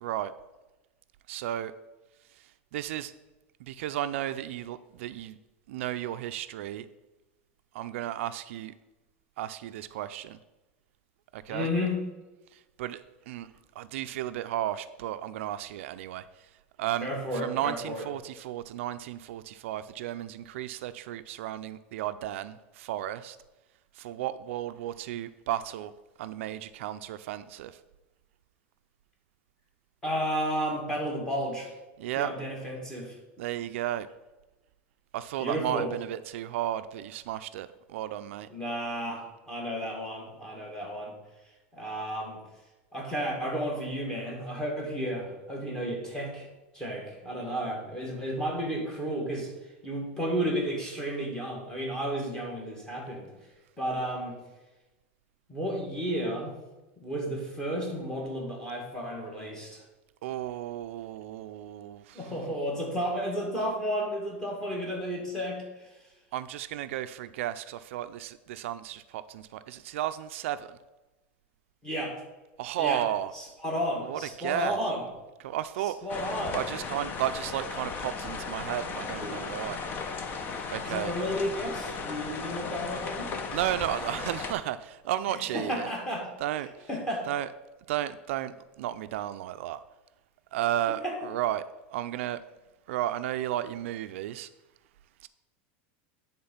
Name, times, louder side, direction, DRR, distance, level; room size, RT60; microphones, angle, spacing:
voice 1, 0.0-0.3 1.3-1.7 2.4-3.1 3.6-5.4 5.7-6.9 7.7-8.7 9.4-10.4 11.3-11.7 12.5-13.5 13.8-16.5 16.8-23.4 23.9-25.9 26.2-27.8 32.0-32.3 33.4-34.1 35.1-38.5 60.2-62.4 66.3-70.8 72.6-73.3 74.0-74.8 75.4-76.0 76.5-79.8 80.7-81.1 83.5-85.9 86.4-86.9 87.2-87.5 87.9-89.8 90.5-91.6 91.9-92.4 92.9-94.5 95.2-95.3, right 12 dB, 75° right, 12 dB, 0.4 m, -33 dB
voice 2, 11.5-12.0 17.0-18.0 30.0-31.7 32.2-33.1 35.4-35.9 38.5-41.1 41.7-42.4 42.9-46.5 46.7-49.5 49.8-53.3 53.8-54.3 55.5-56.6 57.0-59.8 62.1-65.9 71.8-72.2 72.8-73.0 73.3-75.0 76.0-76.6 79.2-79.5 80.9-83.3 85.3-86.3 86.9-87.3 91.0-91.2, equal, 10° left, -1 dB, 2.1 m, -32 dB
sound 1, 76.1-84.5, left 5 dB, 30° left, 0.7 m, -36 dB
9.6 x 3.6 x 5.6 m, 1.1 s
supercardioid pair, 140°, 7 cm